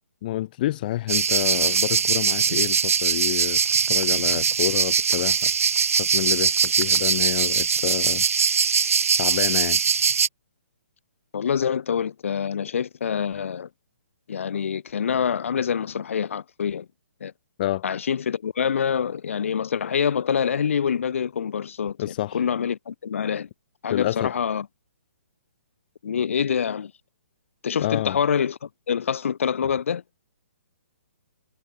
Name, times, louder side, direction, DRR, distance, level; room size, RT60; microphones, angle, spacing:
voice 1, 0.2-3.6 3.9-5.5 6.0-8.2 8.5-8.6 9.2-9.8 17.6-17.8 22.0-22.4 23.9-24.3 27.8-28.2, left 14 dB, 40° left, 0.7 m, -28 dB
sound 1, 1.1-10.3, right 6 dB, 85° right, 0.5 m, -21 dB
voice 2, 11.3-13.7 14.3-16.9 17.2-17.3 17.8-23.5 23.8-24.7 26.0-26.9 27.6-30.0, left 7 dB, 65° left, 2.5 m, -26 dB
hypercardioid pair, 145°, 7 cm